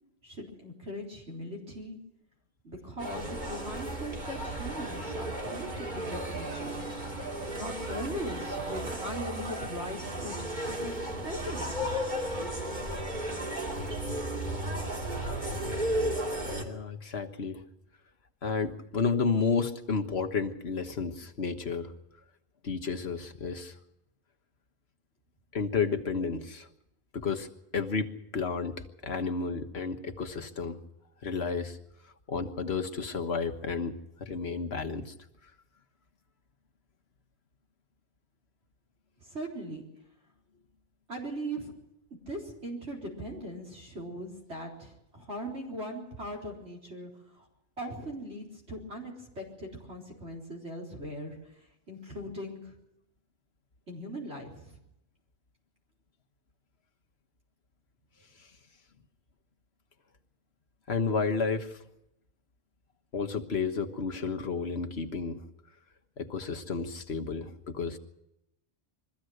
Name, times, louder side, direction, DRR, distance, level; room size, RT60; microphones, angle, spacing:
voice 1, 0.2-2.0 2.6-6.9 7.5-12.0 39.2-39.9 41.1-41.7 42.3-47.1 47.4-47.5 47.8-51.4 51.9-52.8 53.9-54.8, equal, 85° right, -1 dB, 4.4 m, -40 dB
sound 1, 3.0-16.6, right 1 dB, 45° right, 3.0 m, -34 dB
voice 2, 16.6-17.6 18.4-21.9 22.6-23.8 25.5-26.7 27.1-30.8 31.2-31.8 32.3-35.1 58.4-58.5 60.9-61.8 63.1-65.4 66.2-68.0, left 5 dB, 70° left, 7 dB, 1.6 m, -32 dB
22.5 x 15.0 x 7.9 m, 0.84 s
omnidirectional pair, 1.1 m